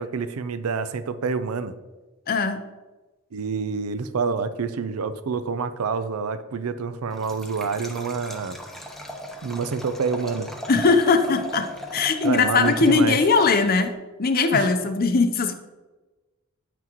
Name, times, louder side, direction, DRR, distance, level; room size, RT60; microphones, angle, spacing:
voice 1, 0.0-1.7 3.3-8.6 9.4-10.5 12.2-13.2 14.5-14.7, right 5 dB, 75° right, 12 dB, 0.5 m, -27 dB
voice 2, 2.3-2.6 10.7-11.7 11.9-13.9 14.2-15.5, left 4 dB, 45° left, 8 dB, 0.6 m, -20 dB
Liquid, 7.1-13.9, equal, ahead, 0.8 m, -37 dB
9.1 x 6.0 x 3.0 m, 1.2 s
head